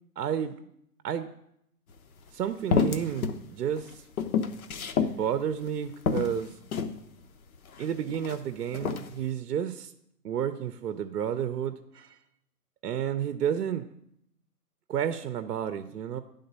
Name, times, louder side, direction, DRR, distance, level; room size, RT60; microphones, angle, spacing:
voice 1, 0.2-0.7 1.0-1.3 2.3-4.0 5.0-6.6 7.8-9.9 10.2-12.2 12.8-13.9 14.9-16.2, right 9 dB, 70° right, 11 dB, 0.6 m, -31 dB
sound 1, 1.9-2.0 2.7-3.4 3.8-5.2 5.6-5.7 6.1-7.0 7.7-8.4 8.7-9.1, left 6 dB, 60° left, 0.7 m, -28 dB
10.5 x 3.8 x 5.4 m, 0.75 s
hypercardioid pair, 140°, 48 cm